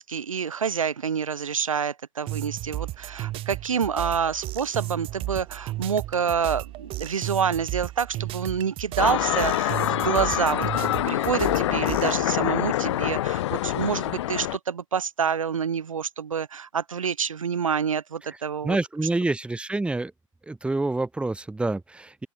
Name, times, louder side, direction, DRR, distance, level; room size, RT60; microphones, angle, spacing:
voice 1, 0.0-18.8, right 7 dB, 75° right, 2.9 m, -27 dB
sound 1, 2.3-12.2, right 16 dB, 30° right, 1.4 m, -34 dB
sound 2, 9.0-14.6, left 14 dB, 55° left, 1.0 m, -25 dB
voice 2, 18.6-20.1 20.5-22.3, right 2 dB, 5° right, 1.7 m, -27 dB
open air
figure-of-eight pair, 100°, 17 cm